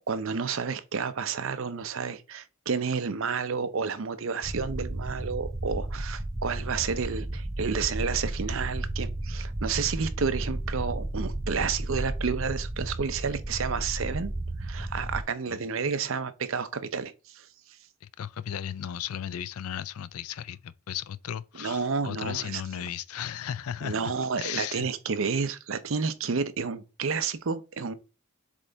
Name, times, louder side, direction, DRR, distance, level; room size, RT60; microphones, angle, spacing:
voice 1, 0.1-14.3 14.6-17.5 21.6-22.6 23.8-28.0, right 5 dB, 65° right, 0.6 m, -30 dB
sound 1, 4.4-15.2, right 1 dB, 15° right, 0.4 m, -33 dB
voice 2, 18.0-24.1 24.4-24.9, left 9 dB, 85° left, 0.4 m, -35 dB
7.4 x 3.3 x 3.9 m
head